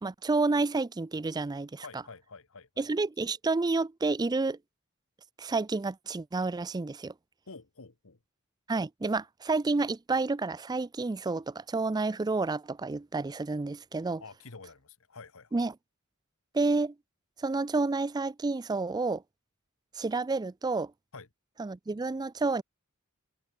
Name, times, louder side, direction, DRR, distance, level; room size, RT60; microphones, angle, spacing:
voice 1, 0.0-2.0 2.8-4.6 5.4-7.1 8.7-14.2 15.5-15.7 16.5-16.9 17.4-19.2 20.0-20.9 21.6-22.6, right 3 dB, 20° right, 0.4 m, -30 dB
voice 2, 1.8-2.9 7.5-8.2 14.2-15.6 21.1-21.3, left 4 dB, 65° left, 1.5 m, -48 dB
head